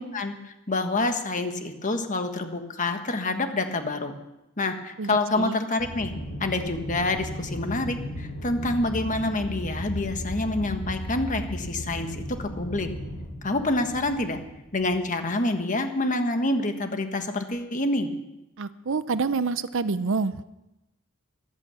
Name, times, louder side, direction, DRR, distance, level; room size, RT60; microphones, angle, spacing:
voice 1, 0.0-4.1 4.6-6.1 6.4-12.9 13.4-14.4 14.7-18.1, left 2 dB, 35° left, 7 dB, 1.4 m, -27 dB
voice 2, 5.0-5.6 18.6-20.4, right 4 dB, 60° right, 15 dB, 0.6 m, -27 dB
Aircraft, 5.8-15.2, equal, 60° left, 4.6 m, -36 dB
14.5 x 12.0 x 7.0 m, 0.95 s
head